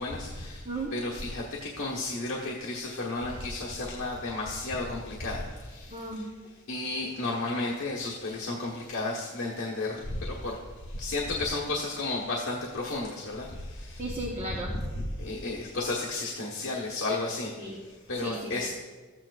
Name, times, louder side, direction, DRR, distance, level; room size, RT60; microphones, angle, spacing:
voice 1, 0.0-0.6 0.9-1.4 1.8-5.4 6.7-9.9 10.4-10.6 11.0-13.5 15.0-17.5 18.1-18.7, left 2 dB, 65° left, -5 dB, 1.2 m, -32 dB
voice 2, 5.9-6.3 14.0-14.8 17.6-17.8 18.2-18.5, right 2 dB, 25° right, -3 dB, 1.0 m, -35 dB
14.0 x 8.9 x 2.4 m, 1.4 s
head